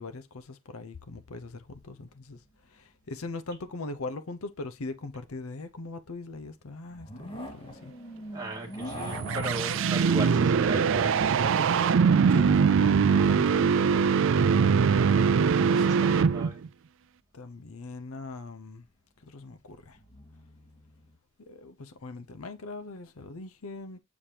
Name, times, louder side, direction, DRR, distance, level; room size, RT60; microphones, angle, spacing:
voice 1, 0.0-2.4 2.7-7.9 12.3-14.1 15.7-15.8 17.3-18.8 19.2-20.0 21.4-24.0, left 3 dB, 85° left, 0.7 m, -40 dB
sound 1, 2.1-2.7 3.1-3.2 6.8-13.3 18.2-18.3 19.9-21.2, equal, 25° left, 2.0 m, -43 dB
voice 2, 8.3-12.1 14.9-15.3 15.7-16.6, right 1 dB, 20° right, 2.1 m, -38 dB
sound 2, 8.9-16.7, right 6 dB, 60° right, 0.4 m, -22 dB
7.2 x 4.9 x 2.8 m
head